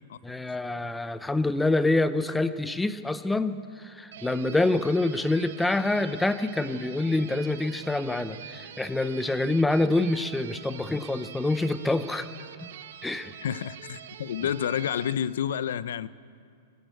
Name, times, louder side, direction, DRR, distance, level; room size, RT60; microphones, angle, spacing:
voice 1, 0.2-3.6 4.0-12.3 13.0-13.3, left 2 dB, 5° left, 12 dB, 0.6 m, -26 dB
sound 1, 4.1-15.1, right 9 dB, 65° right, 1.2 m, -45 dB
voice 2, 13.4-16.1, left 9 dB, 75° left, 17 dB, 0.7 m, -29 dB
21.5 x 19.5 x 8.1 m, 2.3 s
supercardioid pair, 175°, 0 cm